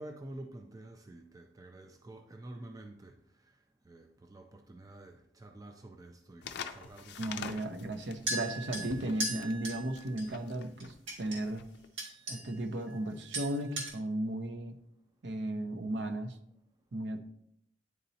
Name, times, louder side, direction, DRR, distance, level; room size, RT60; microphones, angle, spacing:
voice 1, 0.0-3.1 3.9-7.6, right 1 dB, 20° right, 4 dB, 0.4 m, -49 dB
sound 1, 6.4-11.9, left 7 dB, 55° left, 0.4 m, -46 dB
voice 2, 7.2-11.7 12.3-14.8 15.2-16.4 16.9-17.2, right 1 dB, 60° right, 7 dB, 0.6 m, -35 dB
sound 2, 8.3-10.3 10.8-11.4 12.0-12.6 12.9-13.1 13.3-13.9, right 1 dB, 75° right, 1.7 m, -38 dB
9.4 x 4.0 x 2.7 m, 0.73 s
head